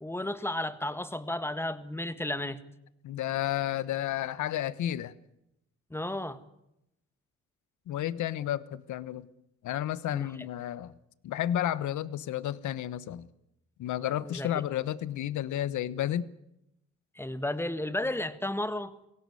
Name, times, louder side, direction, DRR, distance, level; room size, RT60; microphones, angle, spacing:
voice 1, 0.0-2.6 5.9-6.4 10.1-10.3 14.2-14.5 17.2-18.9, left 1 dB, 10° left, 1.7 m, -33 dB
voice 2, 3.0-5.1 7.9-9.3 9.6-10.9 11.2-13.3 13.8-16.3, left 12 dB, 75° left, 1.1 m, -31 dB
23.5 x 17.0 x 9.6 m
cardioid pair, 90°, 30 cm